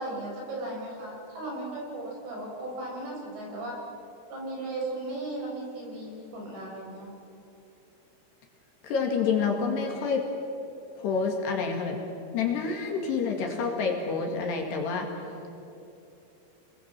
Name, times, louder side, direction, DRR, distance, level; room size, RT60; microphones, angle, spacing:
voice 1, 0.0-3.8 4.3-7.1, right 2 dB, 60° right, -1 dB, 7.7 m, -36 dB
voice 2, 8.8-10.2 11.0-12.0 12.3-15.1, left 5 dB, 60° left, 2 dB, 3.8 m, -28 dB
29.5 x 20.5 x 7.5 m, 2.9 s
omnidirectional pair, 5.7 m